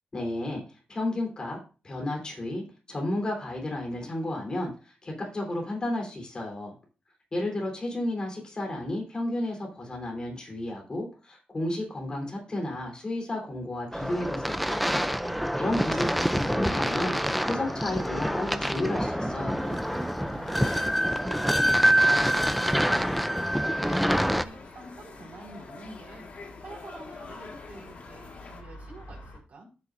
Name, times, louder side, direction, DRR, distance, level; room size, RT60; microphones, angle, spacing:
voice 1, 0.1-0.6 0.9-1.6 1.8-6.8 7.3-14.9 15.6-17.2 17.5-19.8, left 1 dB, 30° left, 0 dB, 3.6 m, -32 dB
sound 1, 13.9-24.4, equal, ahead, 0.4 m, -26 dB
voice 2, 15.1-15.7 20.2-23.3 23.8-26.3 26.6-29.7, right 2 dB, 60° right, -3 dB, 4.5 m, -47 dB
sound 2, 15.8-29.4, left 2 dB, 80° left, 4.6 m, -47 dB
sound 3, 19.6-28.6, left 4 dB, 50° left, 1.7 m, -47 dB
14.0 x 7.0 x 2.6 m, 0.33 s
wide cardioid pair, 150°, 3 cm